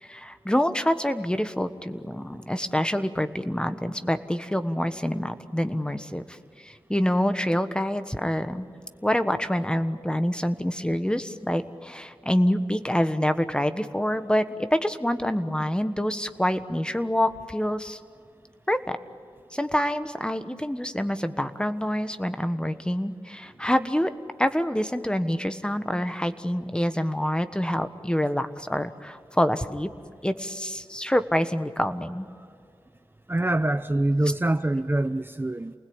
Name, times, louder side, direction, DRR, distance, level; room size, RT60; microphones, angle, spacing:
voice 1, 0.0-8.7 9.0-18.0 18.7-19.0 19.5-24.1 24.4-29.9 30.2-32.3, equal, 10° left, 10 dB, 1.3 m, -26 dB
voice 2, 33.3-35.7, right 1 dB, 25° right, 9 dB, 0.7 m, -24 dB
29.0 x 20.0 x 8.9 m, 2.3 s
wide cardioid pair, 65°, 9 cm